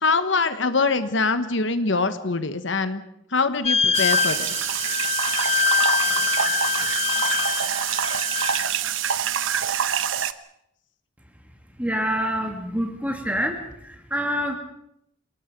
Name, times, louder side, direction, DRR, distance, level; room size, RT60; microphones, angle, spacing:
voice 1, 0.0-3.0 3.3-4.5, left 4 dB, 65° left, 11 dB, 1.2 m, -23 dB
sound 1, 3.6-8.6, left 7 dB, 30° left, 1.1 m, -24 dB
sound 2, 3.9-10.3, right 9 dB, 80° right, 1.0 m, -25 dB
voice 2, 11.8-14.6, equal, 5° right, 4 dB, 2.6 m, -26 dB
28.0 x 19.0 x 5.3 m, 0.77 s
head